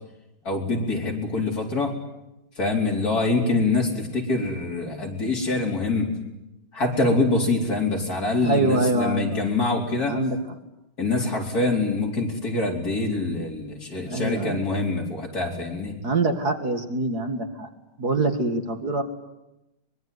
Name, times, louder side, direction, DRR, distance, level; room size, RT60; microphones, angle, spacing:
voice 1, 0.4-1.9 2.6-6.1 6.7-10.2 11.0-15.9, left 3 dB, 45° left, 0 dB, 4.8 m, -25 dB
voice 2, 8.4-9.4 10.1-10.4 14.0-14.6 16.0-17.7 18.0-19.0, right 2 dB, 50° right, 6 dB, 2.3 m, -24 dB
24.0 x 22.5 x 9.6 m, 0.93 s
omnidirectional pair, 2.3 m